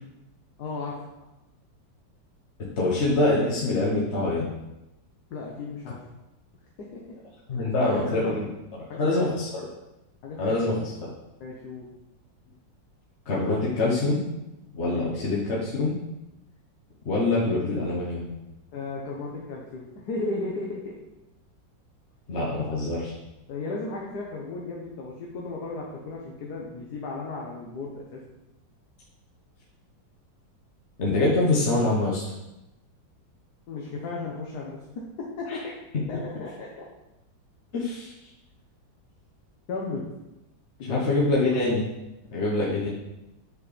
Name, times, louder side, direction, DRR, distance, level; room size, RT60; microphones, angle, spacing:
voice 1, 0.6-1.0 5.3-6.0 6.9-7.0 7.7-8.4 8.9-9.2 10.2-10.5 11.4-11.9 14.9-15.1 18.7-20.9 22.5-22.6 23.5-28.2 33.7-35.6 36.1-36.8 39.7-40.0 40.8-41.0, left 3 dB, 60° left, -2 dB, 1.4 m, -35 dB
voice 2, 2.6-4.4 7.5-8.5 8.9-9.6 10.4-11.1 13.3-14.2 14.7-15.9 17.0-18.3 22.3-23.1 31.0-32.3 35.5-35.6 37.7-38.1 40.8-41.9 42.3-42.9, left 2 dB, 40° left, -6 dB, 1.3 m, -25 dB
6.8 x 4.3 x 5.0 m, 0.95 s
omnidirectional pair, 2.0 m